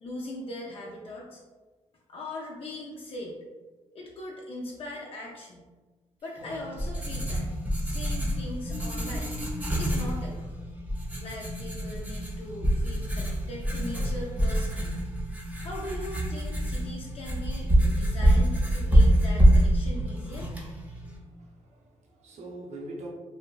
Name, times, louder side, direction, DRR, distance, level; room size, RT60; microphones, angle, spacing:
voice 1, 0.0-1.4 2.1-3.4 3.9-5.7 6.2-7.5 7.8-9.4 9.7-10.5 11.2-15.0 15.6-20.6, left 1 dB, 50° left, -4 dB, 0.4 m, -40 dB
Writing, 6.4-21.2, right 1 dB, 10° right, 0.4 m, -26 dB
voice 2, 20.7-23.1, right 1 dB, 65° right, -2 dB, 0.6 m, -44 dB
2.5 x 2.1 x 2.2 m, 1.3 s
cardioid pair, 115°, 13 cm